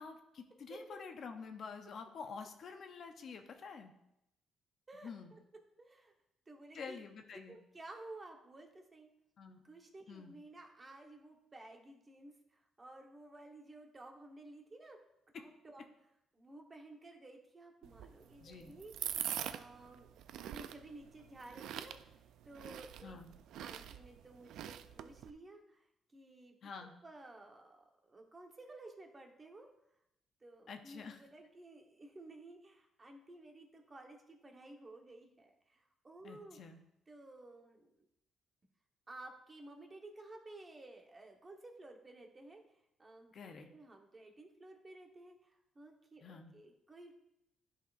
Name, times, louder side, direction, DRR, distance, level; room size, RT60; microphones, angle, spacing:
voice 1, 0.0-3.9 5.0-5.3 6.7-7.6 9.4-9.7 10.1-10.3 18.4-18.8 23.0-23.4 26.6-27.0 30.7-31.2 36.2-36.8 43.3-43.7 46.2-46.5, left 5 dB, 55° left, 6 dB, 0.7 m, -48 dB
voice 2, 5.8-6.1 6.5-7.0 7.5-9.1 9.6-15.0 15.3-15.8 16.3-20.1 20.4-22.0 22.4-23.2 23.6-25.9 26.1-29.7 30.4-36.6 37.1-38.1 39.1-42.6 43.0-47.1, right 2 dB, 30° right, 3 dB, 1.1 m, -54 dB
sound 1, 17.8-25.3, right 10 dB, 80° right, 0.3 m, -45 dB
11.0 x 4.3 x 2.5 m, 0.83 s
cardioid pair, 90°, 0 cm